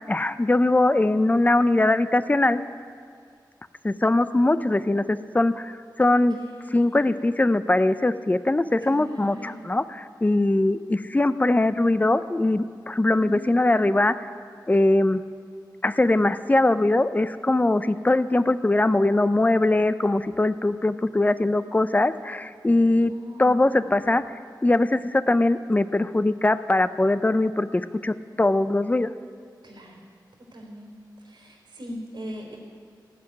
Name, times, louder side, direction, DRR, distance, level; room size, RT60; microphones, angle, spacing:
voice 1, 0.1-2.6 3.8-5.7 6.0-6.4 6.7-14.3 14.7-15.2 15.8-23.1 23.4-24.2 24.6-29.1, left 2 dB, 20° left, 13 dB, 0.5 m, -21 dB
voice 2, 6.4-7.2 8.9-9.7 13.2-13.9 23.1-23.7 29.6-29.9 30.5-30.9 31.3-32.6, equal, 80° right, -1 dB, 3.5 m, -39 dB
16.5 x 5.9 x 9.7 m, 2.2 s
wide cardioid pair, 90°, 8 cm